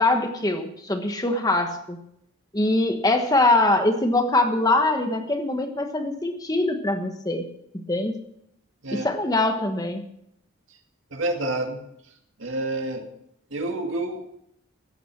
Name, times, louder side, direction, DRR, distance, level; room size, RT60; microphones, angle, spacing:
voice 1, 0.0-2.0 2.5-7.5 7.7-8.2 8.9-10.0, left 2 dB, 20° left, 6 dB, 1.3 m, -23 dB
voice 2, 11.1-11.8 12.4-13.1 13.5-14.2, right 2 dB, 70° right, 3 dB, 2.2 m, -28 dB
14.5 x 9.5 x 6.0 m, 0.74 s
head